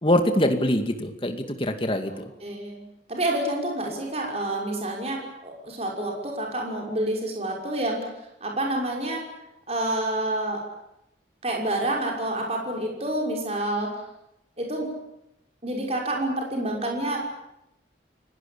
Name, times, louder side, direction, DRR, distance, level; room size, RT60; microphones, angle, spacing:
voice 1, 0.0-2.1, left 1 dB, 30° left, 6 dB, 2.3 m, -23 dB
voice 2, 2.1-2.8 3.1-8.1 8.4-9.3 9.7-10.6 11.4-13.9 14.6-14.9 15.6-17.2, right 1 dB, 35° right, 0 dB, 5.9 m, -28 dB
29.5 x 18.0 x 8.8 m, 0.85 s
head